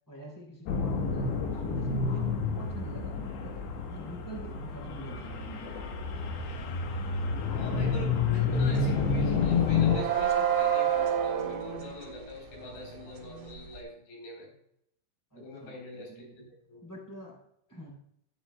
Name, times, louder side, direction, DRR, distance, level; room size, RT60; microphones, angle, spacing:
voice 1, 0.1-3.6 3.9-5.9 15.3-16.3 16.8-17.4 17.7-17.9, right 2 dB, 5° left, -1 dB, 1.6 m, -45 dB
sound 1, 0.7-10.0, left 5 dB, 70° left, 3.1 m, -29 dB
voice 2, 7.5-14.5 15.3-16.8, left 2 dB, 50° left, -1 dB, 5.2 m, -44 dB
sound 2, 8.6-8.9 9.1-13.8, right 9 dB, 75° right, 4.5 m, -30 dB
14.5 x 10.0 x 2.3 m, 0.74 s
omnidirectional pair, 6.0 m